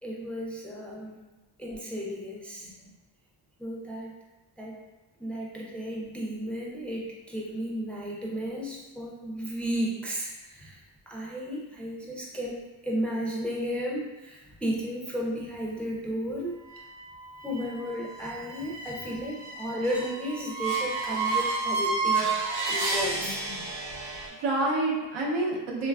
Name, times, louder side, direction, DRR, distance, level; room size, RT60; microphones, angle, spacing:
voice 1, 0.0-1.2 1.6-2.7 3.6-4.1 4.6-4.8 5.2-10.8 11.1-12.6 12.8-16.6 17.4-22.3 22.7-23.4, equal, 5° left, -3 dB, 0.4 m, -33 dB
sound 1, 16.6-24.3, right 4 dB, 60° right, 0.8 m, -31 dB
voice 2, 23.2-23.6 24.0-25.9, right 2 dB, 85° right, -2 dB, 0.7 m, -29 dB
3.1 x 2.3 x 2.3 m, 1.1 s
cardioid pair, 75°, 46 cm